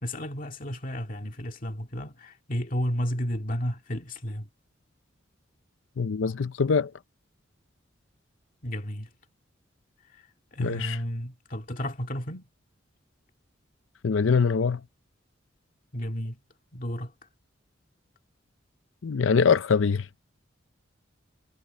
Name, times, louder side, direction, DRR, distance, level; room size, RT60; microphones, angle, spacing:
voice 1, 0.0-4.5 8.6-9.1 10.1-10.3 10.5-12.5 15.9-16.4 16.7-17.1, equal, 45° left, 2.1 m, -32 dB
voice 2, 6.0-6.9 10.6-11.0 14.0-14.8 19.0-20.1, left 5 dB, 85° left, 0.5 m, -23 dB
head